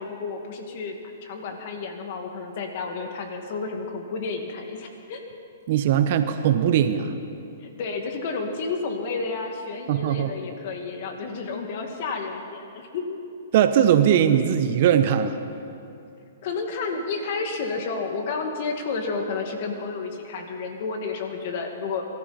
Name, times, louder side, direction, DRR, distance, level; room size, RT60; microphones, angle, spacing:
voice 1, 0.0-5.2 7.6-13.2 16.4-22.1, left 4 dB, 50° left, 4 dB, 2.1 m, -31 dB
voice 2, 5.7-7.1 9.9-10.3 13.5-15.4, right 9 dB, 50° right, 9 dB, 0.9 m, -20 dB
23.0 x 13.5 x 4.3 m, 2.6 s
hypercardioid pair, 145°, 0 cm